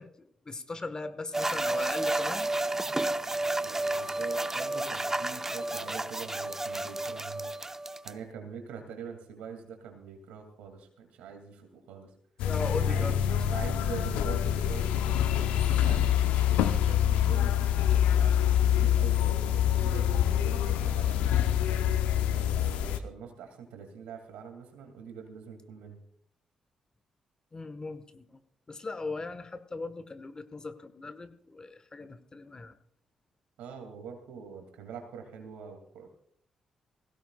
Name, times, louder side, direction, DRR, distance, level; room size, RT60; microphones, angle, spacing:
voice 1, 0.0-2.5 12.4-13.2 27.5-28.4 28.7-32.7, left 3 dB, 35° left, 11 dB, 1.4 m, -39 dB
sound 1, 1.3-8.1, right 2 dB, 20° right, 0.7 m, -31 dB
voice 2, 3.6-7.5 8.0-12.1 12.8-13.2 13.5-18.4 18.7-26.0 33.6-36.1, right 6 dB, 80° right, 4 dB, 2.5 m, -44 dB
sound 2, 12.4-23.0, left 10 dB, 80° left, 0.7 m, -26 dB
20.0 x 16.5 x 2.4 m, 0.63 s
hypercardioid pair, 45°, 2 cm